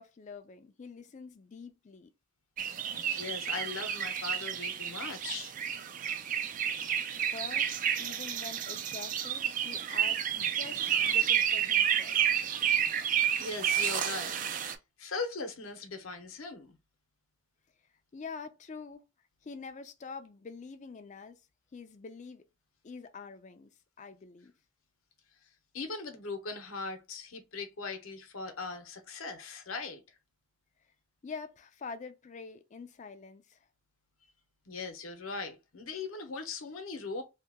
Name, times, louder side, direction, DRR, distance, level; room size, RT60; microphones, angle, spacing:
voice 1, 0.0-2.1 6.9-12.2 18.1-19.0 19.4-21.4 21.7-22.5 22.8-24.5 31.2-33.7, left 4 dB, 35° left, 0.4 m, -46 dB
sound 1, 2.6-14.8, right 9 dB, 40° right, 0.3 m, -30 dB
voice 2, 2.9-5.5 12.5-12.6 13.0-14.7 15.0-16.8 25.7-30.0 34.7-37.2, left 4 dB, 80° left, 0.8 m, -40 dB
2.8 x 2.3 x 3.5 m
head